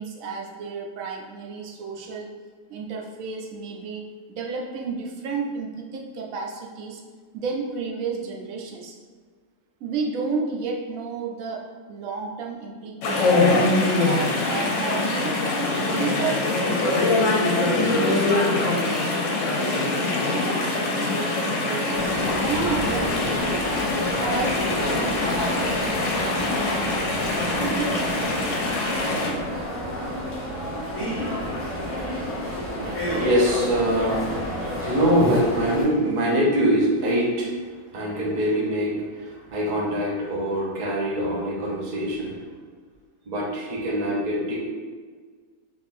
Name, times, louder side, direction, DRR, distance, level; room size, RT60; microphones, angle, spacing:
voice 1, 0.0-2.3 2.7-7.0 7.3-9.0 9.8-13.5 14.0-15.3 15.8-18.9 19.2-20.2 20.4-22.1 22.4-23.7 23.9-28.1, right 4 dB, 75° right, 0 dB, 0.9 m, -32 dB
Chatter / Stream, 13.0-29.3, left 2 dB, 65° left, 0.9 m, -23 dB
sound 1, 21.9-35.8, equal, 15° left, 0.6 m, -30 dB
voice 2, 32.5-42.4 43.3-44.7, equal, 50° right, -4 dB, 0.5 m, -24 dB
3.5 x 2.5 x 2.5 m, 1.5 s
omnidirectional pair, 1.5 m